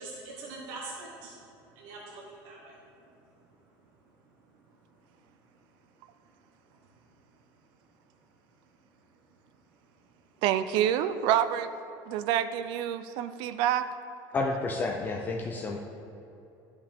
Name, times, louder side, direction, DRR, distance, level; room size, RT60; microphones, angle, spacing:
voice 1, 0.0-1.4 1.7-2.8 3.1-3.3 3.6-3.7 4.2-4.8 5.1-5.3 6.7-6.9 9.7-9.8, right 3 dB, 70° right, -3 dB, 1.3 m, -45 dB
voice 2, 10.4-11.7 12.1-13.9, right 10 dB, 55° right, 12 dB, 0.4 m, -27 dB
voice 3, 14.3-15.8, left 3 dB, 20° left, 1 dB, 0.4 m, -30 dB
12.0 x 5.6 x 3.5 m, 2.8 s
cardioid pair, 165°, 10 cm